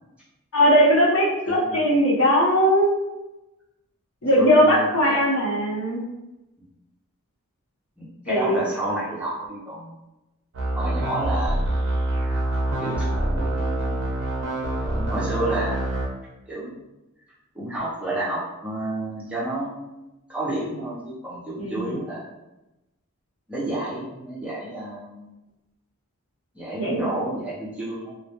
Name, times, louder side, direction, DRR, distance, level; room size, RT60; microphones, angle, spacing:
voice 1, 0.5-2.9 4.2-6.0 8.3-8.6 21.6-22.0 26.8-27.1, equal, 65° left, -4 dB, 0.7 m, -19 dB
voice 2, 1.5-1.8 4.4-5.2 8.0-10.0 10.7-11.7 12.8-14.1 14.9-16.8 17.5-22.2 23.5-25.3 26.5-28.1, right 1 dB, 5° right, -8 dB, 0.6 m, -31 dB
sound 1, 10.5-16.1, right 1 dB, 55° right, 0.5 m, -25 dB
2.2 x 2.1 x 2.8 m, 0.98 s
head